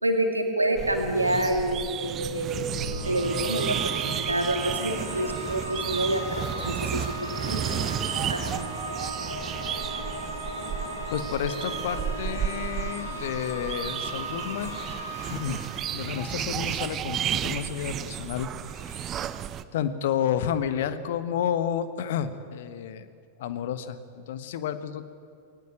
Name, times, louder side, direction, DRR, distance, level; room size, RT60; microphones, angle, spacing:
voice 1, 0.0-2.7 3.0-7.9 8.3-8.8, right 1 dB, 85° right, 4 dB, 2.6 m, -28 dB
sound 1, 0.8-19.6, right 10 dB, 30° right, 0.8 m, -33 dB
sound 2, 2.5-16.9, right 1 dB, 75° left, 4.0 m, -37 dB
voice 2, 11.1-14.9 15.3-19.3 19.7-23.1 23.4-25.1, left 9 dB, 55° left, 12 dB, 1.3 m, -31 dB
20.0 x 19.5 x 8.8 m, 2.4 s
figure-of-eight pair, 90°, 0 cm